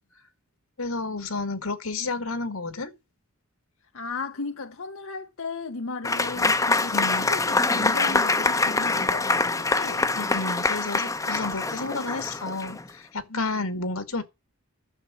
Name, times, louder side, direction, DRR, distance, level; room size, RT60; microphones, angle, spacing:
voice 1, 0.8-2.9 6.9-7.3 10.2-14.2, left 3 dB, 85° left, 2.2 m, -31 dB
voice 2, 3.9-10.0 13.3-13.7, left 4 dB, 65° left, 0.8 m, -36 dB
Applause / Crowd, 6.0-12.9, left 3 dB, 15° left, 0.7 m, -24 dB
11.5 x 7.3 x 7.5 m
head